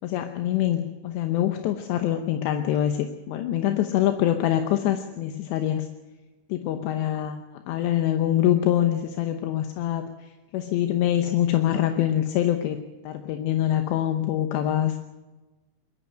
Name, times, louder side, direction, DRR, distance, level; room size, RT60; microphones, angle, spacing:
voice 1, 0.0-5.9 6.5-15.0, left 11 dB, 75° left, 6 dB, 2.8 m, -25 dB
22.0 x 13.5 x 9.0 m, 1.1 s
omnidirectional pair, 5.7 m